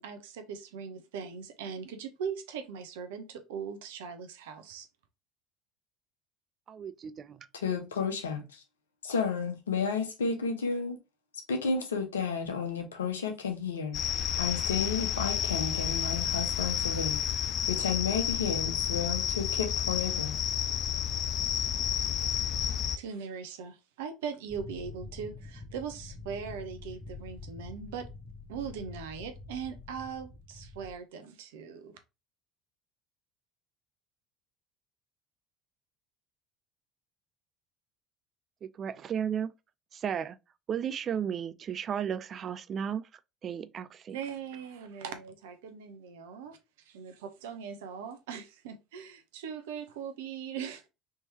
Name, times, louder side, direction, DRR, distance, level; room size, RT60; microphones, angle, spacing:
voice 1, 0.0-4.9 22.6-28.1 28.5-31.9 44.1-46.6 46.9-50.9, right 7 dB, 75° right, 0.7 m, -40 dB
voice 2, 6.7-7.4 38.6-39.5 39.9-40.4 40.7-43.1 43.4-44.2, right 8 dB, 45° right, 0.3 m, -34 dB
voice 3, 7.5-8.6 9.0-11.0 11.5-14.0 14.4-17.2 17.7-20.4, left 5 dB, 85° left, 0.8 m, -32 dB
sound 1, 13.9-23.0, left 9 dB, 50° left, 0.4 m, -30 dB
sound 2, 24.5-31.0, left 3 dB, 20° left, 0.9 m, -46 dB
3.5 x 3.0 x 2.9 m
hypercardioid pair, 70°, 0 cm